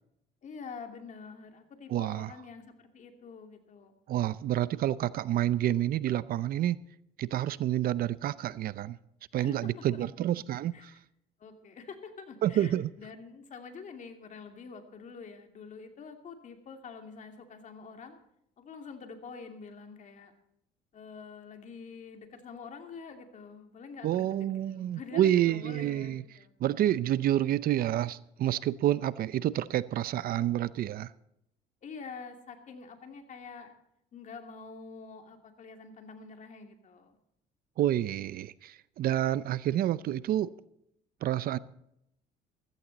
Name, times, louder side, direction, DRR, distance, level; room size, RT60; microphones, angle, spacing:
voice 1, 0.4-3.9 9.4-9.6 9.9-10.0 10.7-10.9 11.4-18.2 18.6-20.3 20.9-26.5 31.8-33.7 34.1-37.2, left 5 dB, 45° left, 2.6 m, -46 dB
voice 2, 1.9-2.3 4.1-6.8 7.2-9.0 9.3-10.9 12.4-12.9 24.0-26.2 26.6-31.1 37.8-40.5 41.2-41.6, right 12 dB, 60° right, 0.6 m, -28 dB
15.5 x 14.5 x 4.1 m
cardioid pair, 110°, 17 cm